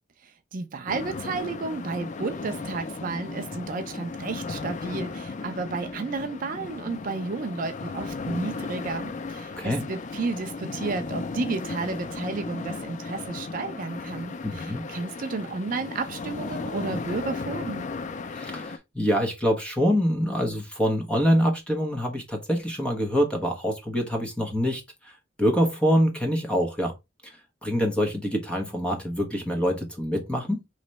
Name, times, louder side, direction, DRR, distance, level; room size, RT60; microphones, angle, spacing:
voice 1, 0.2-17.9, right 3 dB, 45° right, 0.4 m, -32 dB
sound 1, 0.9-18.8, left 4 dB, 40° left, 0.4 m, -35 dB
voice 2, 14.4-14.8 18.3-24.8 25.4-26.9 27.2-27.3 27.6-30.6, equal, 5° left, 1.0 m, -25 dB
3.2 x 3.0 x 4.1 m
head